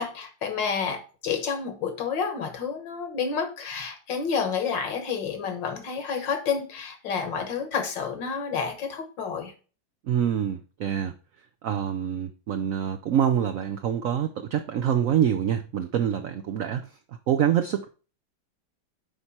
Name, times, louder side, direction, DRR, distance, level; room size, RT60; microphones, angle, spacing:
voice 1, 0.0-9.5, left 6 dB, 70° left, 2.0 m, -29 dB
voice 2, 10.1-11.1 11.6-16.9 17.3-17.9, right 9 dB, 80° right, 0.7 m, -25 dB
8.8 x 4.5 x 4.3 m
omnidirectional pair, 2.1 m